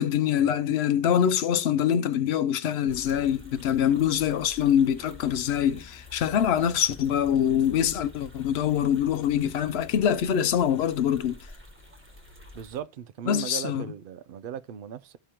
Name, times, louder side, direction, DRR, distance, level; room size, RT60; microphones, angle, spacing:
voice 1, 0.0-11.4 13.3-13.9, left 9 dB, 75° left, 0.8 m, -24 dB
sound 1, 2.9-12.8, left 3 dB, 10° right, 1.2 m, -48 dB
voice 2, 12.5-15.2, right 10 dB, 65° right, 0.7 m, -37 dB
13.5 x 4.9 x 2.9 m
omnidirectional pair, 1.1 m